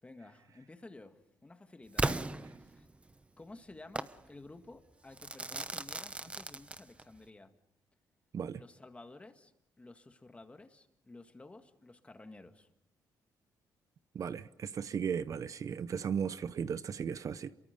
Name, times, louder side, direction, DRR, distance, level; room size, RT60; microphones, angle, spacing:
voice 1, 0.0-2.3 2.6-2.9 3.4-7.6 8.5-12.7, left 2 dB, 15° left, 1.9 m, -53 dB
Crackle / Fireworks, 2.0-3.1 4.0-4.2 5.2-7.2, right 2 dB, 15° right, 0.9 m, -36 dB
voice 2, 14.1-17.5, right 7 dB, 50° right, 0.8 m, -36 dB
30.0 x 23.0 x 5.3 m
cardioid pair, 110°, 7 cm